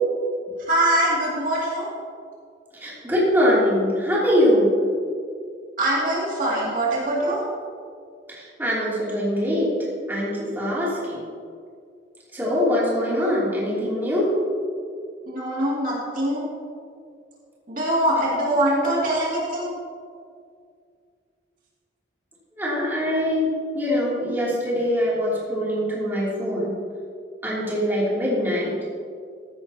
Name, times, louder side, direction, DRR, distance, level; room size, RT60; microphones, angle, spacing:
voice 1, 0.7-1.9 5.8-7.4 15.3-16.5 17.7-19.7, right 1 dB, 50° right, -6 dB, 2.5 m, -23 dB
voice 2, 2.8-4.7 8.4-9.7 10.1-11.2 12.3-14.3 22.6-26.7 27.4-28.7, equal, 10° right, -8 dB, 2.9 m, -23 dB
14.5 x 11.5 x 2.9 m, 2.2 s
head